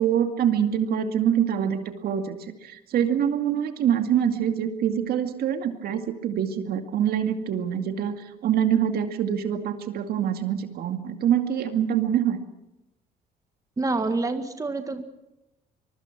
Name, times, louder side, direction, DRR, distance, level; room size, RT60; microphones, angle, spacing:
voice 1, 0.0-2.4 2.6-12.4, right 9 dB, 65° right, 7 dB, 2.2 m, -25 dB
voice 2, 13.8-15.0, right 3 dB, 20° right, 7 dB, 1.8 m, -27 dB
24.5 x 23.0 x 6.0 m, 0.93 s
cardioid pair, 110°, 17 cm